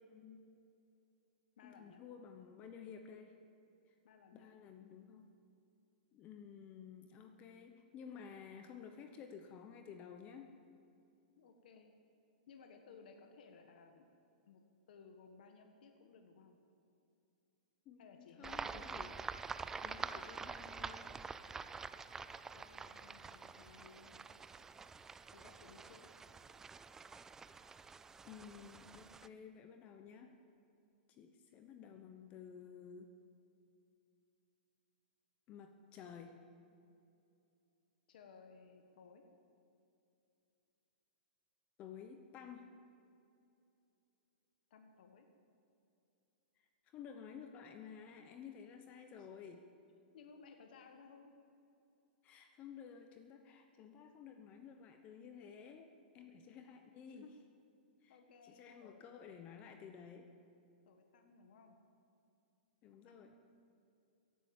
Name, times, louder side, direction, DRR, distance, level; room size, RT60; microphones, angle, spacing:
voice 1, 0.1-0.5 1.6-3.4 3.9-4.0 4.3-5.3 6.1-10.6 17.9-19.2 19.8-21.1 28.2-30.3 31.1-33.1 35.5-36.4 41.8-42.7 46.6-49.7 52.2-57.3 58.0-60.3 62.8-63.3, left 7 dB, 25° left, 6 dB, 0.9 m, -53 dB
voice 2, 1.6-2.0 4.0-4.6 11.4-11.9 12.5-14.1 14.4-14.6 14.9-16.6 18.0-19.1 22.5-24.2 25.3-26.1 38.1-39.2 44.7-45.3 49.2-49.3 50.1-51.3 56.5-57.3 58.1-59.0 60.8-61.8 63.0-63.3, left 5 dB, 65° left, 5 dB, 1.6 m, -60 dB
sound 1, 18.4-29.3, right 5 dB, 10° right, 0.3 m, -47 dB
16.0 x 11.0 x 7.2 m, 2.7 s
hypercardioid pair, 150°, 5 cm